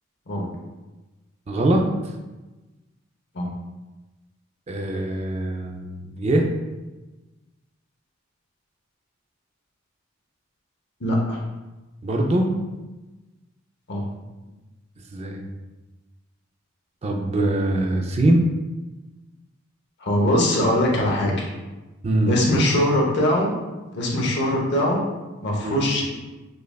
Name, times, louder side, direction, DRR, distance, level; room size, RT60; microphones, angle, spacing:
voice 1, 1.5-1.9 4.7-6.5 12.0-12.5 15.1-15.4 17.0-18.5 22.0-22.4 25.6-25.8, right 1 dB, 30° right, 2 dB, 0.4 m, -22 dB
voice 2, 11.0-11.4 13.9-14.1 20.0-21.5 22.2-23.6 23.9-25.0 25.4-26.1, left 1 dB, 55° left, -2 dB, 0.8 m, -21 dB
5.2 x 2.3 x 2.3 m, 1.1 s
head